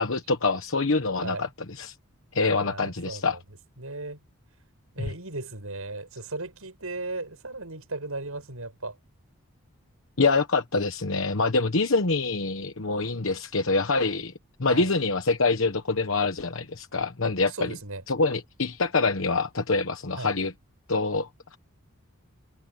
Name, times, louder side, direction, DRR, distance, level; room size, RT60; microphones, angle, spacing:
voice 1, 0.0-1.5 1.8-1.9 2.3-3.4 10.2-14.3 14.6-17.8 18.1-20.5 20.9-21.6, left 3 dB, 65° left, 1.1 m, -25 dB
voice 2, 1.2-1.5 2.3-3.4 3.8-4.2 4.9-9.0 14.7-14.9 17.5-18.0 20.2-20.3, right 2 dB, 80° right, 6.0 m, -36 dB
head